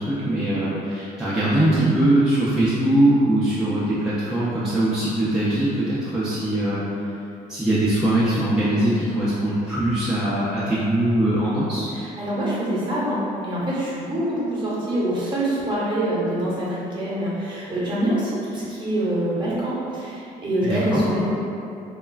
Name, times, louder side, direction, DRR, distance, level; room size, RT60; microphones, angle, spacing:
voice 1, 0.0-6.8 7.5-11.9 20.6-21.3, right 1 dB, 5° right, -10 dB, 0.4 m, -21 dB
voice 2, 11.9-21.3, right 1 dB, 30° right, -8 dB, 0.8 m, -25 dB
3.0 x 2.2 x 2.3 m, 2.7 s
cardioid pair, 110°, 17 cm